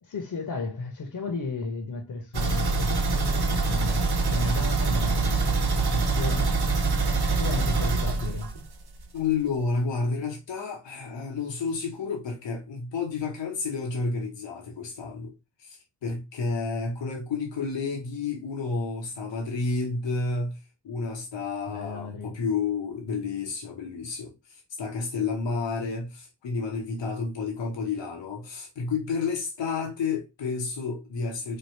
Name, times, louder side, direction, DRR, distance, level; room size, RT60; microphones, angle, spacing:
voice 1, 0.0-6.6 7.4-8.5 21.7-22.4, left 3 dB, 55° left, 0.9 m, -34 dB
sound 1, 2.3-9.0 9.3-9.4 9.8-9.9, right 3 dB, 65° right, 1.0 m, -25 dB
voice 2, 9.1-15.3 15.6-31.6, left 4 dB, 85° left, 0.9 m, -30 dB
3.3 x 2.3 x 4.4 m
cardioid pair, 55°, 43 cm